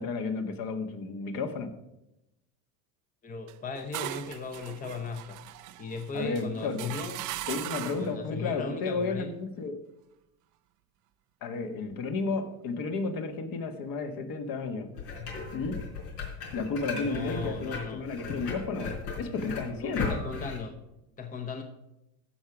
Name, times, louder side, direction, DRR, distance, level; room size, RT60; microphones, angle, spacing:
voice 1, 0.0-1.7 6.1-7.0 7.5-9.8 11.4-14.9 15.5-15.8 16.5-20.2, left 4 dB, 45° left, 7 dB, 1.6 m, -32 dB
voice 2, 3.2-5.4 5.8-7.2 8.0-9.3 17.0-18.0 19.8-20.7 21.2-21.6, left 4 dB, 15° left, 5 dB, 0.9 m, -37 dB
sound 1, 3.5-8.2, right 15 dB, 40° right, 0.6 m, -39 dB
sound 2, 15.0-20.6, left 5 dB, 85° left, 4.2 m, -36 dB
14.0 x 4.9 x 6.0 m, 0.89 s
supercardioid pair, 120°, 46 cm